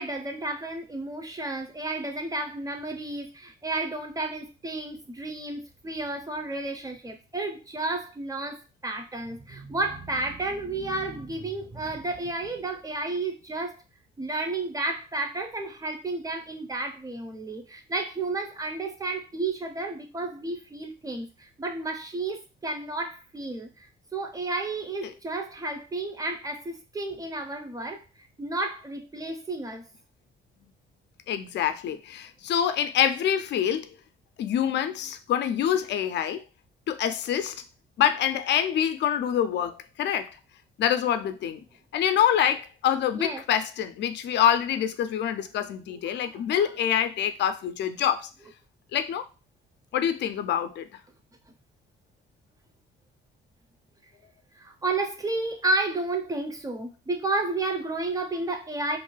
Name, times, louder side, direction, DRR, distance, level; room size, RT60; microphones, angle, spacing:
voice 1, 0.0-13.8 14.2-23.9 24.1-28.0 28.4-29.8 43.1-43.4 46.1-46.7 54.6-59.0, right 2 dB, 15° right, 0.6 m, -32 dB
voice 2, 31.3-33.9 34.4-36.4 36.9-37.6 38.0-40.3 40.8-41.6 41.9-48.3 48.9-49.2 49.9-50.9, left 9 dB, 60° left, 0.4 m, -26 dB
2.5 x 2.2 x 3.1 m
cardioid pair, 90°, 20 cm